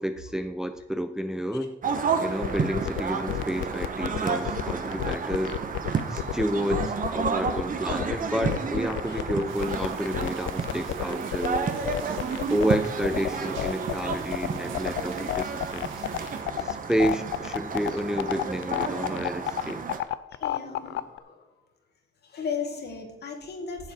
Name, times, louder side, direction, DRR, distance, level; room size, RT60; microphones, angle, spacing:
voice 1, 0.0-1.8 2.2-5.6 6.1-11.7 12.5-16.1 16.6-19.8, equal, 5° right, 8 dB, 0.6 m, -30 dB
sound 1, 1.8-20.0, right 5 dB, 45° right, 1.2 m, -31 dB
sound 2, 2.4-21.2, left 14 dB, 80° left, 0.5 m, -30 dB
sound 3, 9.5-16.4, right 8 dB, 80° right, 1.3 m, -47 dB
voice 2, 16.1-16.4 20.3-21.4 22.2-23.9, left 5 dB, 55° left, 3 dB, 2.1 m, -36 dB
10.5 x 7.3 x 4.5 m, 0.87 s
cardioid pair, 90°, 20 cm